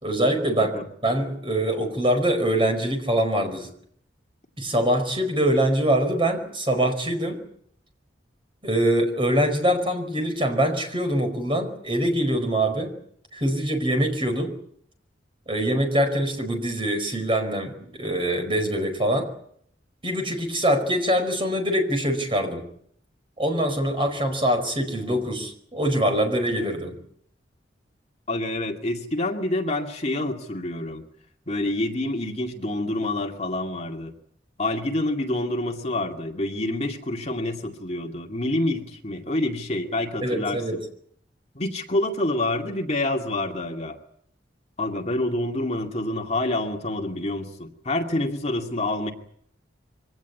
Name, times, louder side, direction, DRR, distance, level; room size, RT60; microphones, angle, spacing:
voice 1, 0.0-3.7 4.6-7.4 8.6-12.9 13.3-14.5 15.5-19.3 20.0-22.6 23.4-27.0 40.2-40.8, right 1 dB, 25° right, 5 dB, 4.8 m, -24 dB
voice 2, 28.3-31.0 31.5-34.1 34.6-40.8 41.5-44.0 44.8-49.1, left 1 dB, 35° left, 2 dB, 2.4 m, -27 dB
24.0 x 18.0 x 9.6 m, 0.68 s
head